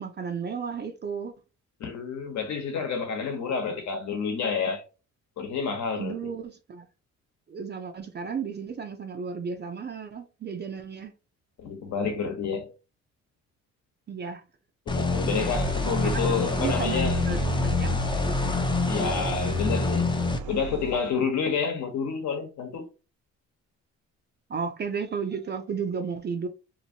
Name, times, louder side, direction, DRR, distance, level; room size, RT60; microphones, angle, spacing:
voice 1, 0.0-1.3 6.0-6.9 7.5-11.1 14.1-14.4 16.1-18.4 24.5-26.5, right 6 dB, 35° right, 0.5 m, -33 dB
voice 2, 1.8-4.8 5.4-6.1 11.6-12.7 14.9-17.4 18.9-20.1 20.5-22.9, left 5 dB, 65° left, 1.1 m, -29 dB
sound 1, 14.9-20.4, left 2 dB, 15° left, 0.5 m, -27 dB
sound 2, 15.5-21.1, left 1 dB, 85° right, 0.6 m, -34 dB
2.8 x 2.6 x 2.8 m
cardioid pair, 90°, 30 cm